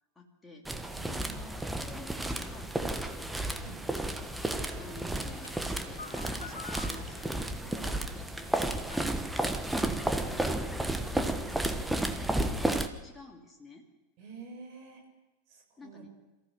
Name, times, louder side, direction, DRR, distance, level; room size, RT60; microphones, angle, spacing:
voice 1, 0.1-2.7 3.0-3.7 3.9-4.4 4.8-13.9 15.8-16.1, left 2 dB, 10° left, 1 dB, 2.6 m, -52 dB
sound 1, 0.7-12.9, right 1 dB, 5° right, 1.3 m, -32 dB
voice 2, 0.9-1.3 3.6-3.8 4.5-5.3 6.4-6.5 7.7-8.2 12.3-12.6 14.2-15.0 15.5-16.0, right 4 dB, 40° right, 2 dB, 6.5 m, -49 dB
sound 2, 3.7-9.2, left 4 dB, 70° left, 2.1 m, -49 dB
28.0 x 14.5 x 6.8 m, 1.0 s
figure-of-eight pair, 90°, 0 cm